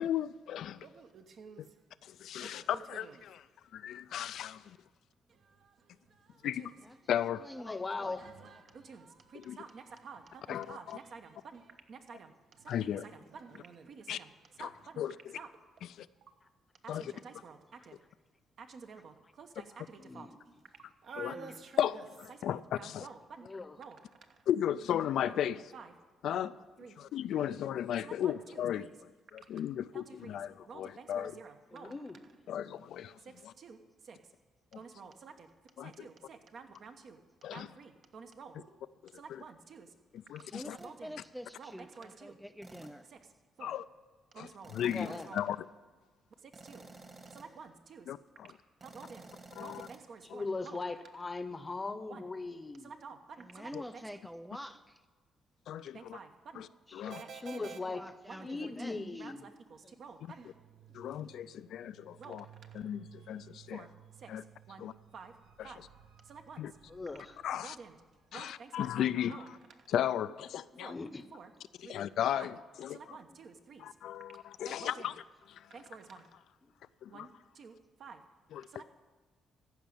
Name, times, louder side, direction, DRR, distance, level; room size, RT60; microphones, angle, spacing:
voice 1, 0.0-0.8 1.6-1.7 2.0-3.4 3.7-4.8 6.4-6.6 7.1-7.4 9.5-9.6 10.5-11.0 12.7-13.1 14.1-14.2 14.6-14.7 15.0-15.1 16.0-16.1 16.9-17.1 21.2-21.3 21.8-23.1 24.5-25.6 26.2-26.5 27.0-28.9 29.3-31.3 32.5-33.2 35.8-36.1 37.4-37.7 39.3-39.4 40.3-40.8 43.6-43.8 44.4-45.6 48.1-48.5 49.6-49.9 53.7-53.8 55.7-56.2 56.6-56.7 56.9-57.2 60.9-62.4 62.7-63.8 64.3-64.4 64.8-64.9 65.6-65.7 66.6-66.7 67.4-67.8 68.3-69.4 69.9-70.9 71.9-73.2 73.8-75.1 75.5-75.7 77.0-77.3 78.5-78.7, left 10 dB, 75° left, 0.3 m, -35 dB
voice 2, 0.8-1.8 2.4-3.2 5.3-6.8 7.7-15.5 16.8-18.0 18.6-20.3 20.7-22.0 22.3-23.5 23.8-24.5 25.2-25.4 25.7-25.9 26.2-26.5 26.8-27.0 27.3-27.5 28.0-28.9 29.9-30.4 30.7-31.9 33.2-34.2 34.7-35.5 35.8-37.2 37.5-38.8 39.1-39.9 40.8-41.2 41.6-42.4 43.1-43.2 43.6-43.7 44.3-45.4 46.4-46.9 47.3-48.1 48.8-50.8 52.1-52.3 52.8-54.0 55.8-56.6 57.1-57.8 58.3-60.6 61.1-61.2 62.2-62.9 63.7-65.3 65.6-65.8 66.2-66.7 67.6-68.0 68.3-69.5 69.8-69.9 70.8-71.0 71.3-71.5 71.8-72.0 72.3-72.5 72.9-73.9 74.6-75.1 75.7-76.4 77.1-77.3 77.5-78.2 78.7-78.8, right 5 dB, 60° right, 1.1 m, -51 dB
voice 3, 6.8-8.6 40.4-43.1 53.4-55.0 57.6-59.3, equal, ahead, 0.4 m, -48 dB
voice 4, 7.6-8.2 16.9-17.1 20.0-20.3 21.3-21.5 23.4-23.8 31.7-32.2 44.9-45.3 50.3-52.9 57.0-57.1 57.4-58.0 58.4-59.4 66.9-67.3 70.9-71.2, left 3 dB, 25° left, 0.8 m, -39 dB
sound 1, 40.8-41.0 42.6-43.1 44.6-45.5 46.5-47.7 48.8-50.0, right 3 dB, 35° right, 1.7 m, -53 dB
sound 2, 60.3-68.6, right 11 dB, 90° right, 1.2 m, -59 dB
14.5 x 5.2 x 8.8 m
cardioid pair, 90°, 0 cm